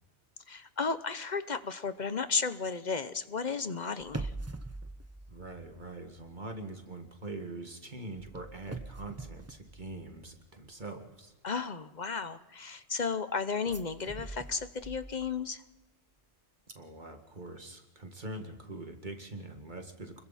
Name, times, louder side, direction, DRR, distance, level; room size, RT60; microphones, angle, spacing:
voice 1, 0.5-4.3 11.4-15.6, left 5 dB, 45° left, 12 dB, 0.9 m, -34 dB
sound 1, 4.0-6.3 6.6-6.9 8.2-10.4 13.6-15.5 15.8-15.9, right 2 dB, 15° right, 0.7 m, -43 dB
voice 2, 5.3-11.3 16.7-20.2, right 2 dB, 40° right, 4 dB, 2.2 m, -43 dB
29.5 x 22.0 x 4.2 m, 1.1 s
omnidirectional pair, 1.2 m